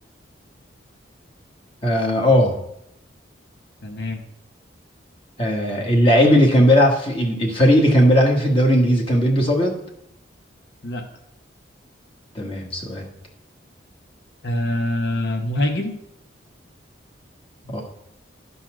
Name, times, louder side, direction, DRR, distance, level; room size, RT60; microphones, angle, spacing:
voice 1, 1.8-2.6 5.4-9.8 12.3-13.1 17.6-17.8, equal, 30° left, 1 dB, 1.3 m, -17 dB
voice 2, 3.8-4.2 10.8-11.1 14.4-15.9, left 1 dB, 60° left, 3 dB, 0.9 m, -24 dB
11.0 x 4.1 x 6.1 m, 0.79 s
head